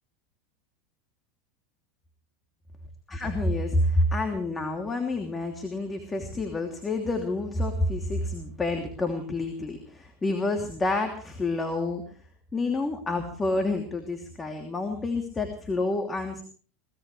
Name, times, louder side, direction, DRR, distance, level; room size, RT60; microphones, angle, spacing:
voice 1, 3.1-12.0 12.5-16.4, left 2 dB, 20° left, 4 dB, 2.9 m, -28 dB
22.5 x 18.5 x 3.3 m, 0.41 s
hypercardioid pair, 100°, 0 cm